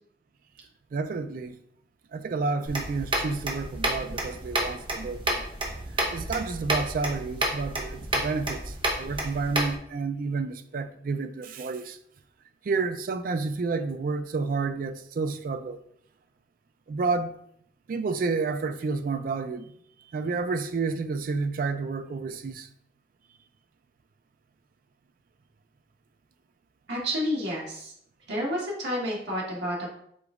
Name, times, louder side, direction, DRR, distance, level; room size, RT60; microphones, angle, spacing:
voice 1, 0.9-1.6 2.1-5.4 6.1-12.0 12.6-15.8 16.9-17.3 17.9-19.6 20.1-22.7, right 4 dB, 50° right, 0.3 m, -30 dB
sound 1, 2.7-9.8, right 1 dB, 25° right, 0.8 m, -30 dB
voice 2, 26.9-27.9 28.3-29.9, equal, 70° right, 1.7 m, -30 dB
5.1 x 3.9 x 2.4 m
head